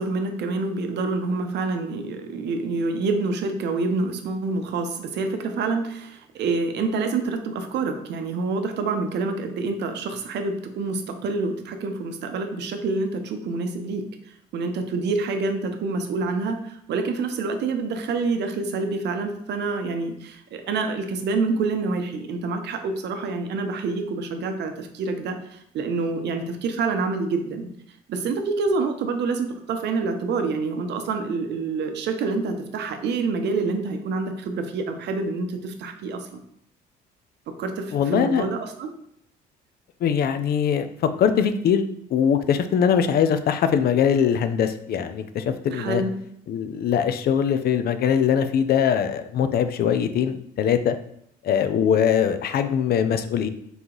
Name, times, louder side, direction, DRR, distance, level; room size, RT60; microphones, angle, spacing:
voice 1, 0.0-14.1 14.5-27.7 28.1-36.4 37.5-38.9 45.7-46.1, right 3 dB, 65° right, 6 dB, 0.7 m, -27 dB
voice 2, 37.9-38.4 40.0-41.8 42.1-46.0 46.5-51.0 51.4-53.5, left 8 dB, 55° left, 10 dB, 0.5 m, -22 dB
3.9 x 2.9 x 3.8 m, 0.72 s
supercardioid pair, 75°, 19 cm